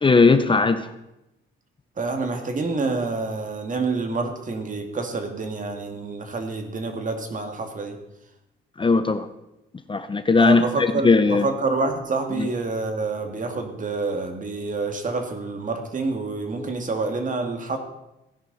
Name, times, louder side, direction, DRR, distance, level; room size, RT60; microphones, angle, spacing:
voice 1, 0.0-0.9 8.8-9.3 9.9-11.5 12.4-12.5, left 4 dB, 25° left, 10 dB, 0.8 m, -18 dB
voice 2, 2.0-8.0 10.4-17.8, right 3 dB, 40° right, 5 dB, 2.3 m, -27 dB
16.5 x 10.5 x 4.2 m, 0.90 s
cardioid pair, 90°, 20 cm